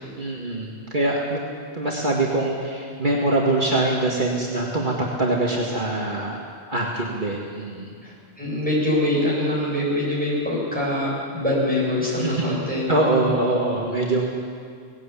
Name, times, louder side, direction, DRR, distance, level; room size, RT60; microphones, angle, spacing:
voice 1, 0.2-1.4 1.7-6.4 6.7-7.9 12.2-12.6 12.9-14.3, right 2 dB, 45° right, -3 dB, 2.1 m, -23 dB
voice 2, 8.0-13.0, left 1 dB, 5° left, -6 dB, 7.7 m, -24 dB
18.5 x 16.5 x 8.5 m, 2.2 s
omnidirectional pair, 1.1 m